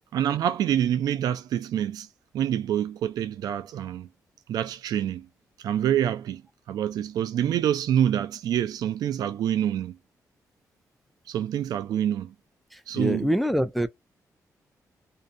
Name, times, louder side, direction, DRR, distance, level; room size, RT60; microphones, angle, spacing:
voice 1, 0.1-2.1 2.3-4.1 4.5-5.3 5.6-6.4 6.7-10.0 11.3-12.3 12.9-13.3, right 10 dB, 85° right, 0.4 m, -26 dB
voice 2, 12.7-13.9, equal, ahead, 0.3 m, -25 dB
2.6 x 2.3 x 2.4 m
cardioid pair, 125°, 6 cm